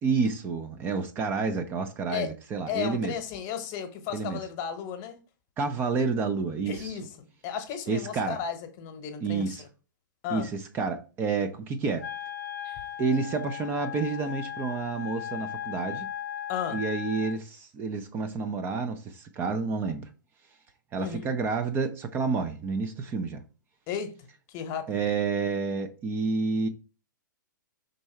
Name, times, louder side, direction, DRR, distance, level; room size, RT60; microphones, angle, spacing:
voice 1, 0.0-3.1 4.1-4.4 5.6-7.0 7.9-8.4 9.2-9.6 10.3-12.1 13.0-16.1 16.7-20.1 20.9-23.4 24.9-26.7, right 4 dB, 20° right, 0.6 m, -29 dB
voice 2, 2.7-5.2 6.7-9.7 10.2-10.5 12.6-12.8 16.5-16.8 21.0-21.3 23.9-24.1 24.5-24.9, left 8 dB, 30° left, 1.1 m, -34 dB
Wind instrument woodwind instrument, 12.0-17.4, left 9 dB, 60° left, 0.7 m, -37 dB
6.2 x 4.0 x 4.4 m
figure-of-eight pair, 110°, 11 cm